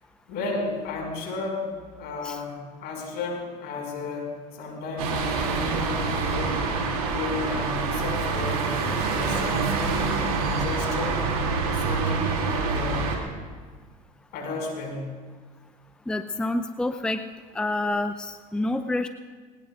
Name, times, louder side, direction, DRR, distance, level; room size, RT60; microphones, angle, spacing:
voice 1, 0.3-1.7 2.0-4.3 4.6-6.6 7.0-8.7 9.1-11.2 11.7-13.0 14.3-15.1, left 3 dB, 60° left, 0 dB, 5.7 m, -33 dB
sound 1, 5.0-13.2, right 4 dB, 90° right, 2.8 m, -26 dB
voice 2, 16.1-17.2 17.5-19.1, left 2 dB, 5° left, 9 dB, 0.6 m, -28 dB
21.5 x 19.0 x 2.5 m, 1.5 s
hypercardioid pair, 85°, 19 cm